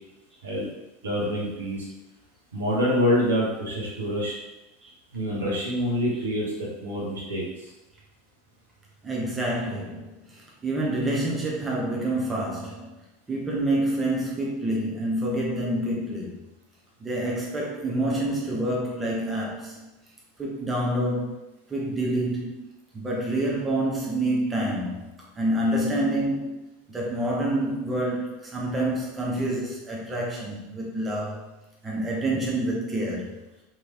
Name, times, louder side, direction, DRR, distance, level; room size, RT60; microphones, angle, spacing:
voice 1, 1.0-1.9 2.5-4.4 5.1-7.7, equal, 70° right, -4 dB, 0.9 m, -26 dB
voice 2, 9.0-12.9 13.3-16.4 17.0-19.9 20.4-21.4 21.7-22.7 22.9-26.6 26.9-31.5 31.8-33.3, right 1 dB, 15° right, -3 dB, 0.6 m, -27 dB
3.0 x 2.8 x 2.3 m, 0.97 s
figure-of-eight pair, 80°, 0 cm